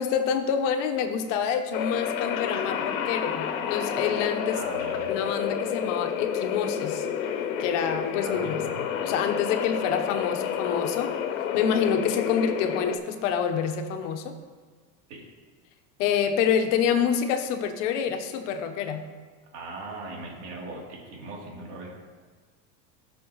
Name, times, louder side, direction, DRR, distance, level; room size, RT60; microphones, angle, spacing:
voice 1, 0.0-4.6 5.1-7.1 7.6-8.6 9.0-11.1 11.5-14.3 16.0-19.0, left 7 dB, 65° left, 6 dB, 1.1 m, -27 dB
sound 1, 1.7-13.0, left 8 dB, 80° left, 1.2 m, -30 dB
voice 2, 4.5-5.1 8.2-8.9 15.1-15.2 19.5-21.9, right 2 dB, 60° right, -3 dB, 3.2 m, -39 dB
18.0 x 6.1 x 3.1 m, 1.5 s
supercardioid pair, 160°, 40 cm